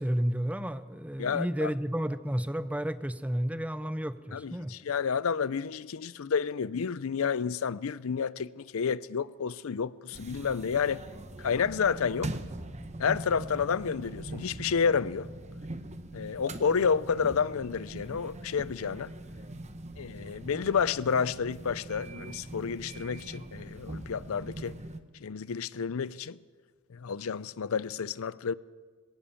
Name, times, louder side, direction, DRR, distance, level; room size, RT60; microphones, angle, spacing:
voice 1, 0.0-4.7, equal, 5° right, 0.6 m, -31 dB
voice 2, 1.2-1.7 4.3-11.0 11.4-12.4 13.0-15.3 16.1-19.1 20.0-24.7 25.2-26.4 26.9-28.5, left 6 dB, 70° left, 0.5 m, -30 dB
sound 1, 10.1-25.0, right 1 dB, 30° right, 1.0 m, -42 dB
21.5 x 17.5 x 7.1 m
head